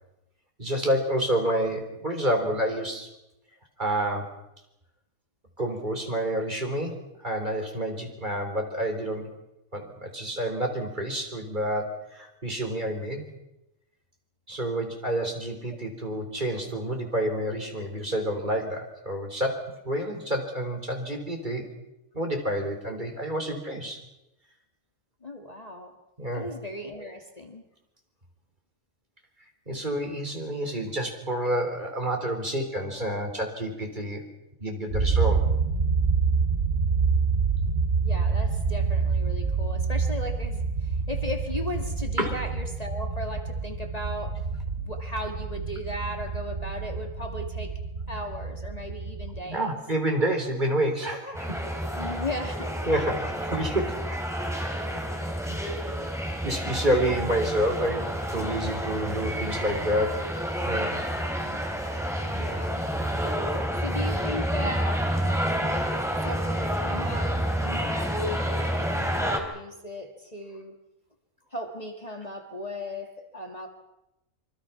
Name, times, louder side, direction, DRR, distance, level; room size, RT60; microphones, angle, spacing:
voice 1, 0.6-3.1 3.8-4.3 5.6-6.9 7.2-9.3 9.7-11.9 12.1-13.3 14.5-19.6 19.8-21.7 22.1-24.0 26.2-26.5 29.7-34.2 34.6-35.4 42.2-42.3 49.4-51.6 52.9-54.2 54.6-54.7 55.5-55.6 56.4-60.2 60.7-60.9 63.3-63.4, right 1 dB, 35° right, 3 dB, 4.1 m, -28 dB
voice 2, 25.2-25.9 26.3-27.6 30.6-30.7 32.0-32.1 38.0-44.4 44.8-47.8 48.1-49.8 52.0-52.8 61.4-61.6 62.2-62.9 63.8-65.9 66.2-70.8 71.5-73.7, left 1 dB, 30° left, 3 dB, 2.2 m, -37 dB
sound 1, 34.9-49.4, right 5 dB, 55° right, 3.5 m, -27 dB
sound 2, 51.3-69.4, equal, ahead, 3.6 m, -29 dB
26.0 x 24.5 x 5.9 m, 0.89 s
omnidirectional pair, 1.4 m